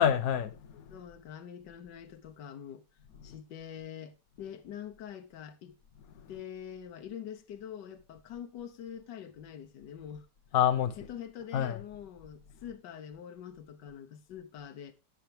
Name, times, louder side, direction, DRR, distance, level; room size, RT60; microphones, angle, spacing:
voice 1, 0.0-1.0 3.1-3.4 6.1-6.4 10.5-11.1 11.5-11.8, left 9 dB, 60° left, 1.3 m, -28 dB
voice 2, 0.9-2.8 3.2-5.8 6.3-10.3 11.0-14.9, left 9 dB, 80° left, 1.5 m, -45 dB
17.5 x 5.9 x 3.3 m
omnidirectional pair, 1.9 m